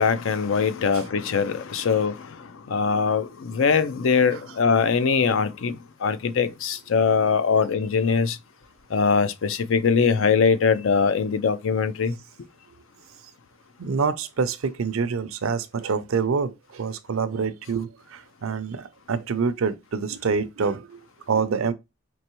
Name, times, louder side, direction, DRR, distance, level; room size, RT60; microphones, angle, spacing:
voice 1, 0.0-5.8 6.0-8.4 8.9-12.1, left 5 dB, 70° left, 0.5 m, -22 dB
voice 2, 13.8-21.7, right 5 dB, 80° right, 0.5 m, -27 dB
4.5 x 3.0 x 3.0 m
head